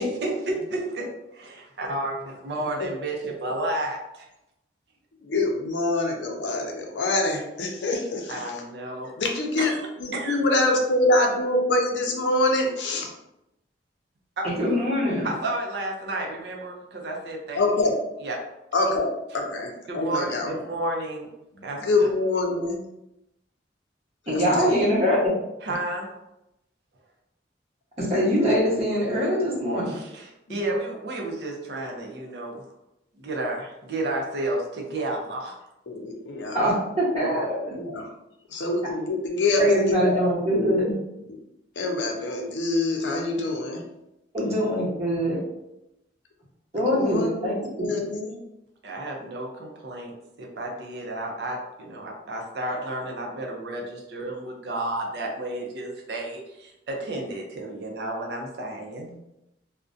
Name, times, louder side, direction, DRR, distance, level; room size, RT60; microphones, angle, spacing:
voice 1, 0.0-4.3 8.3-9.1 9.6-10.4 14.4-14.5 15.2-17.6 18.2-18.4 19.9-21.3 21.6-22.1 25.6-26.1 29.9-32.6 33.2-35.6 48.8-59.2, right 1 dB, 65° right, 0 dB, 0.5 m, -32 dB
voice 2, 5.2-8.4 9.2-9.7 10.0-13.1 17.5-18.0 18.7-20.5 21.8-22.8 24.3-24.8 30.5-30.6 35.9-36.6 37.7-38.1 38.5-40.2 40.9-41.0 41.8-43.8 46.9-47.5 47.8-48.4, left 2 dB, 85° left, 2 dB, 0.5 m, -25 dB
voice 3, 14.4-15.3 24.3-25.2 28.0-29.9 36.5-37.7 39.6-40.8 44.3-45.4 46.7-47.9, equal, 35° right, -7 dB, 0.9 m, -23 dB
2.4 x 2.1 x 2.5 m, 0.88 s
head